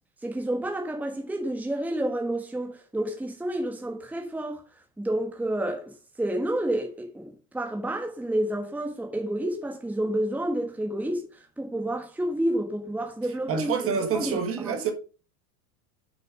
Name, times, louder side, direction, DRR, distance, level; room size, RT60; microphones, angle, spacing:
voice 1, 0.2-4.6 5.0-5.9 6.2-11.3 11.6-13.7 14.1-14.8, right 1 dB, 5° right, 1.5 m, -29 dB
voice 2, 13.5-14.9, right 6 dB, 30° right, 1.7 m, -27 dB
7.5 x 6.4 x 5.2 m
supercardioid pair, 135°, 44 cm